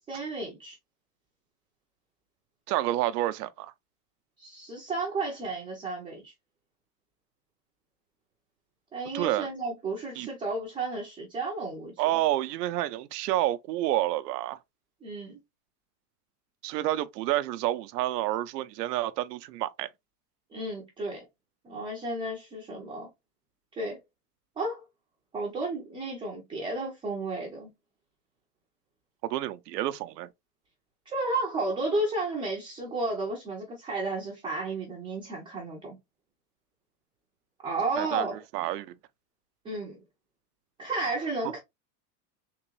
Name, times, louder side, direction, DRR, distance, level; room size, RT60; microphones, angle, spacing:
voice 1, 0.1-0.8 4.4-6.3 8.9-11.9 15.0-15.4 20.5-21.2 21.6-23.1 23.8-24.0 24.6-24.8 25.3-27.7 31.1-36.0 37.6-38.4 39.6-40.0 40.8-41.6, right 2 dB, 10° right, 0.4 m, -32 dB
voice 2, 2.7-3.7 9.1-9.5 10.2-10.3 12.0-14.6 16.6-19.9 29.2-30.3 38.0-38.3 38.5-38.9, right 14 dB, 85° right, 0.6 m, -29 dB
3.7 x 3.0 x 3.0 m
supercardioid pair, 150°, 47 cm